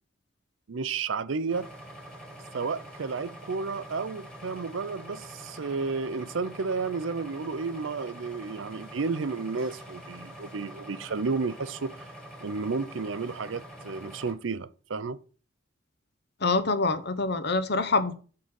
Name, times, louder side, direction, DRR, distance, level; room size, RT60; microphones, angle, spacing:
voice 1, 0.7-1.7 2.5-12.1 12.4-15.2, right 4 dB, 75° right, 0.6 m, -32 dB
sound 1, 1.5-14.3, equal, 5° left, 1.9 m, -45 dB
voice 2, 16.4-18.2, left 3 dB, 60° left, 0.9 m, -25 dB
9.1 x 3.8 x 6.3 m
head